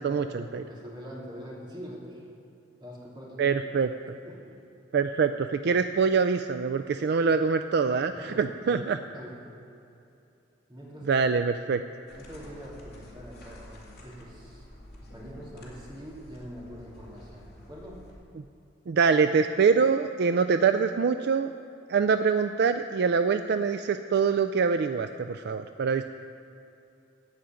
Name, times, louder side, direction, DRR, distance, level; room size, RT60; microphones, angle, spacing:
voice 1, 0.0-2.2 2.8-3.7 4.2-4.5 8.0-9.4 10.7-11.5 12.2-14.7 15.0-18.0, equal, 25° right, -5 dB, 2.7 m, -44 dB
voice 2, 3.4-3.9 4.9-9.0 11.1-11.8 18.9-21.5 21.9-26.1, right 5 dB, 60° right, 9 dB, 0.3 m, -24 dB
sound 1, 12.1-18.1, left 1 dB, 60° left, 2.6 m, -49 dB
15.0 x 5.0 x 8.9 m, 2.7 s
head